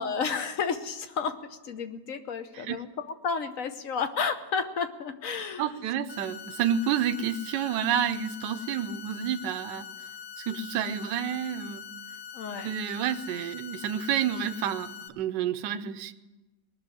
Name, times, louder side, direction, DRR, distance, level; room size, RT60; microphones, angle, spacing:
voice 1, 0.0-2.9 3.2-5.8 12.3-12.7, left 5 dB, 55° left, 8 dB, 1.2 m, -31 dB
voice 2, 5.6-9.9 10.4-11.9 12.6-16.1, right 9 dB, 75° right, 10 dB, 1.3 m, -29 dB
sound 1, 6.1-15.1, left 8 dB, 90° left, 1.8 m, -43 dB
19.5 x 6.7 x 9.7 m, 1.1 s
omnidirectional pair, 2.0 m